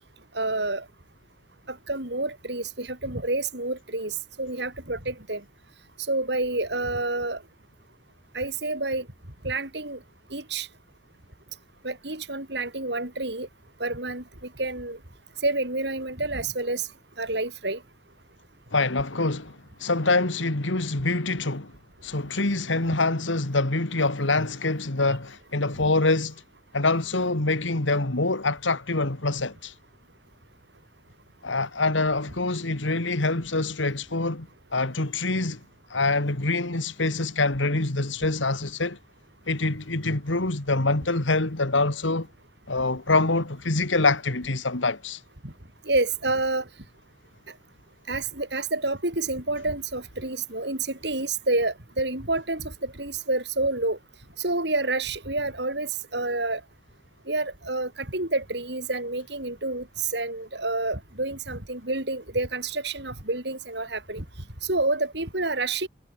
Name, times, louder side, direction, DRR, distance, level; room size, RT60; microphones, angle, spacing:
voice 1, 0.3-0.9 1.7-5.4 6.1-7.4 8.3-9.1 9.4-10.0 10.3-10.7 11.8-13.5 13.8-15.0 15.4-16.9 17.2-17.8 45.4-45.5 45.8-46.7 48.1-54.0 54.4-56.6 57.3-64.2 64.6-65.9, right 2 dB, 60° right, 5.7 m, -28 dB
voice 2, 18.7-21.7 22.0-26.4 26.7-29.7 31.4-35.6 35.9-39.0 39.5-42.3 42.7-45.2, left 3 dB, 80° left, 2.2 m, -25 dB
head